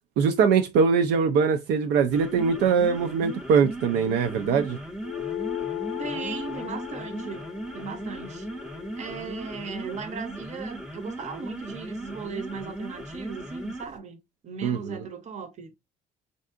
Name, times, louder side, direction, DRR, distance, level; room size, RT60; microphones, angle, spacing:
voice 1, 0.2-4.8 14.6-15.0, right 6 dB, 75° right, 0.4 m, -22 dB
sound 1, 2.0-14.0, right 1 dB, 5° right, 0.5 m, -38 dB
sound 2, 5.0-9.8, left 12 dB, 70° left, 0.4 m, -36 dB
voice 2, 6.0-7.5 7.7-8.5 9.0-14.2 14.4-15.7, right 5 dB, 45° right, 0.7 m, -37 dB
3.4 x 2.6 x 2.4 m
cardioid pair, 110°, 17 cm